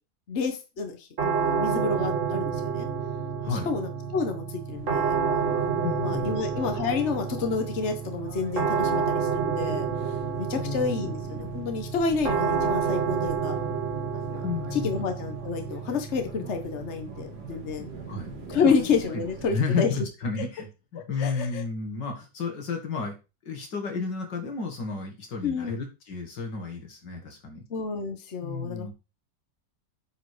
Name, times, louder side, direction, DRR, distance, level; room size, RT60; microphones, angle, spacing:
voice 1, 0.3-2.9 3.5-5.7 6.0-9.8 10.4-13.6 14.1-14.4 14.7-17.9 18.5-19.9 21.2-21.6 25.4-25.8 27.7-28.9, left 5 dB, 45° left, 6 dB, 1.5 m, -29 dB
sound 1, 1.2-20.1, right 6 dB, 45° right, 2.2 m, -30 dB
voice 2, 3.4-3.7 5.8-6.4 10.5-11.1 14.4-15.0 18.1-18.3 18.6-18.7 19.1-19.2 19.5-23.1 23.5-27.6 28.4-28.9, left 5 dB, 90° left, 2 dB, 2.8 m, -32 dB
sound 2, 4.7-19.6, right 4 dB, 70° right, 2.5 m, -44 dB
8.9 x 4.8 x 5.0 m, 0.29 s
omnidirectional pair, 1.8 m